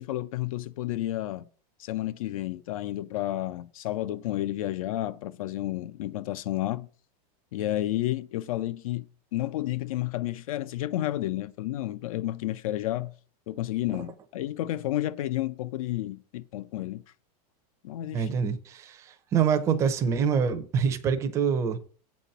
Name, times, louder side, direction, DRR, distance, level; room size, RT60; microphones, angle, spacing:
voice 1, 0.0-1.5 1.8-6.9 7.5-9.1 9.3-13.1 13.5-17.0 17.8-18.3, left 14 dB, 65° left, 0.5 m, -31 dB
voice 2, 18.1-21.8, right 7 dB, 15° right, 0.6 m, -26 dB
8.2 x 4.3 x 6.6 m
supercardioid pair, 180°, 19 cm